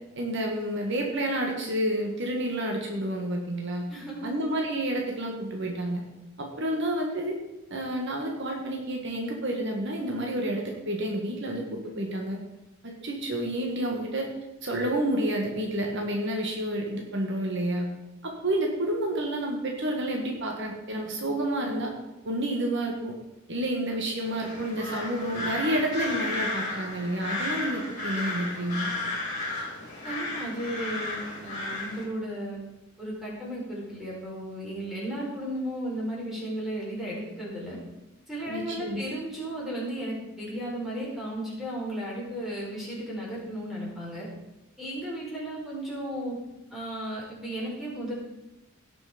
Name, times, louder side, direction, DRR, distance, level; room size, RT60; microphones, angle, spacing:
voice 1, 0.2-3.9 4.2-6.0 6.4-7.4 7.7-12.4 12.8-14.3 14.6-17.9 18.2-21.9 22.2-23.1 23.5-28.9 38.5-39.0, right 1 dB, 60° right, 1 dB, 1.6 m, -29 dB
voice 2, 3.9-4.3 30.0-32.6 33.0-37.8 38.3-44.3 44.8-46.3 46.7-48.1, right 1 dB, ahead, -6 dB, 4.8 m, -34 dB
sound 1, 24.2-32.1, left 2 dB, 35° left, 4.1 m, -33 dB
17.0 x 6.2 x 5.1 m, 0.97 s
head